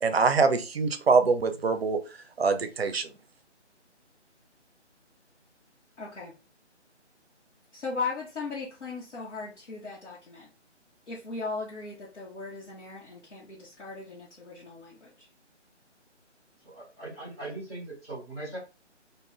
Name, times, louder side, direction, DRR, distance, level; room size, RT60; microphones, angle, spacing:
voice 1, 0.0-2.0 2.4-3.1, right 4 dB, 60° right, 10 dB, 0.5 m, -24 dB
voice 2, 6.0-6.3 7.7-10.5 11.1-15.3, left 4 dB, 70° left, -5 dB, 0.9 m, -37 dB
voice 3, 16.6-18.6, right 2 dB, 5° left, -9 dB, 0.8 m, -40 dB
2.4 x 2.2 x 3.3 m, 0.32 s
figure-of-eight pair, 155°, 35 cm